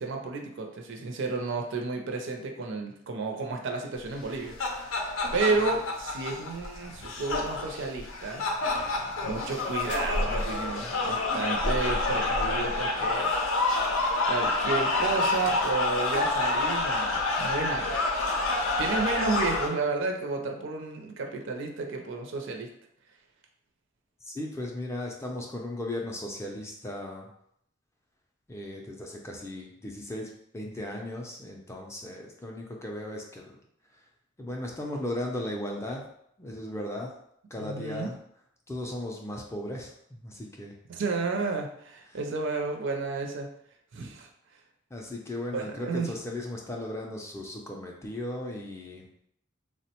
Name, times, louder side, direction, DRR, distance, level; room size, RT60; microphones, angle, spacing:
voice 1, 0.0-4.6 5.3-8.4 9.2-13.3 14.3-18.0 18.8-22.7 37.5-38.1 40.9-43.5 43.9-44.3 45.5-46.1, right 3 dB, 60° right, 3 dB, 0.4 m, -31 dB
sound 1, 4.2-19.7, left 2 dB, 85° left, 0.5 m, -28 dB
voice 2, 24.2-27.3 28.5-33.6 33.9-34.0 34.4-36.1 36.4-37.1 37.5-38.2 38.7-40.8 44.9-49.1, left 1 dB, 15° left, 0 dB, 0.4 m, -36 dB
3.2 x 2.1 x 2.8 m, 0.72 s
head